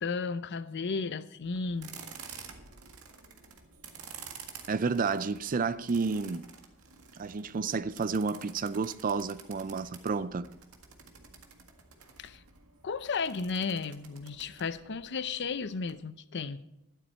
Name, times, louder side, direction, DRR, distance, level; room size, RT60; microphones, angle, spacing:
voice 1, 0.0-1.9 12.2-12.4 12.8-16.6, left 4 dB, 55° left, 0.6 m, -34 dB
sound 1, 1.4-15.9, right 6 dB, 75° right, 1.8 m, -50 dB
voice 2, 4.7-6.5 7.1-10.5, right 4 dB, 40° right, 0.4 m, -31 dB
13.0 x 11.5 x 4.4 m
head